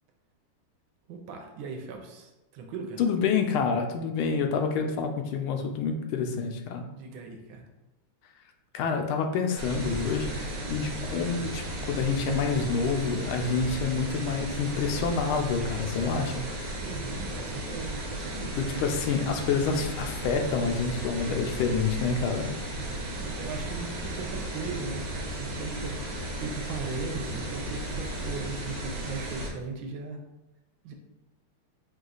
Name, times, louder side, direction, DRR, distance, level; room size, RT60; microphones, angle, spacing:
voice 1, 1.1-3.0 6.9-7.6 16.8-18.6 23.1-30.2 30.8-30.9, right 4 dB, 75° right, 3 dB, 1.3 m, -38 dB
voice 2, 3.0-6.9 8.7-16.4 18.4-22.5 22.9-23.0, left 5 dB, 80° left, 5 dB, 1.4 m, -28 dB
sound 1, 9.6-29.5, right 1 dB, 55° right, 1.2 m, -35 dB
4.7 x 2.3 x 3.9 m, 0.99 s
omnidirectional pair, 2.3 m